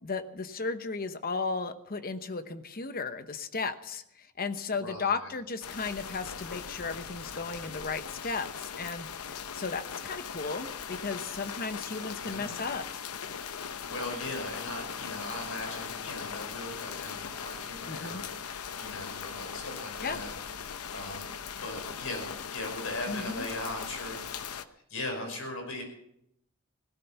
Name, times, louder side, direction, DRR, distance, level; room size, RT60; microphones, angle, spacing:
voice 1, 0.0-4.0 4.4-12.8 17.9-18.2 20.0-20.2 23.1-23.5, left 4 dB, 40° left, 10 dB, 1.0 m, -35 dB
voice 2, 4.8-5.2 11.3-11.5 12.1-12.6 13.6-20.3 20.7-21.3 21.6-24.2 24.9-25.8, left 2 dB, 70° left, 3 dB, 5.5 m, -39 dB
sound 1, 5.6-24.6, left 7 dB, 85° left, 0.8 m, -40 dB
17.0 x 12.5 x 5.8 m, 0.77 s
head